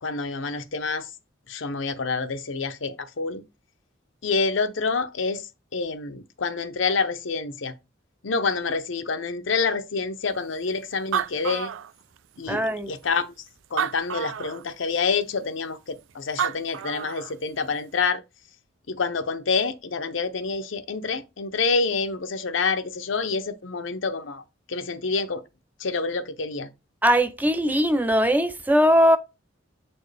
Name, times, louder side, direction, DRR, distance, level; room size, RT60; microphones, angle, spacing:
voice 1, 0.0-1.1 1.5-3.4 4.2-5.4 5.7-7.7 8.2-11.7 12.4-13.2 13.7-18.2 18.9-24.4 24.7-25.4 25.8-26.7, left 4 dB, 80° left, 0.7 m, -27 dB
Animal, 10.7-10.8 10.9-12.4 13.0-13.1 13.6-14.6 16.1-16.2 16.4-17.3, right 8 dB, 85° right, 0.4 m, -29 dB
voice 2, 12.5-12.9 27.0-29.2, equal, 10° right, 0.4 m, -20 dB
7.4 x 4.4 x 3.3 m
head